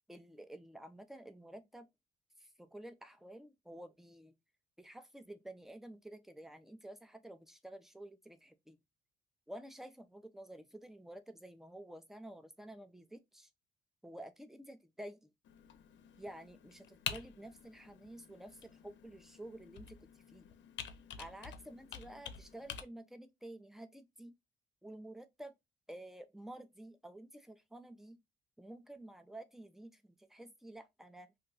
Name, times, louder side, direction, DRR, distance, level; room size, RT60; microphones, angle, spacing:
voice 1, 0.1-1.9 2.4-4.4 4.8-8.8 9.5-13.5 14.0-15.3 16.2-20.5 21.2-24.3 24.8-25.5 25.9-28.2 28.6-31.3, right 1 dB, ahead, 0.5 m, -51 dB
Computer keyboard, 15.4-22.8, left 8 dB, 65° left, 0.6 m, -48 dB
2.7 x 2.1 x 3.9 m
cardioid pair, 90°, 20 cm